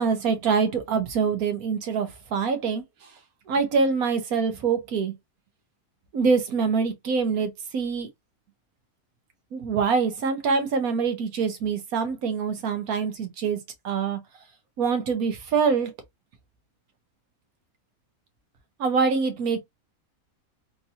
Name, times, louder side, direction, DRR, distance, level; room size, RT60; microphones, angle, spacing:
voice 1, 0.0-3.1 3.5-5.1 6.1-8.1 9.5-13.6 13.8-14.2 14.8-15.9 18.8-19.6, right 5 dB, 80° right, 1.4 m, -25 dB
3.6 x 2.7 x 2.7 m
omnidirectional pair, 1.5 m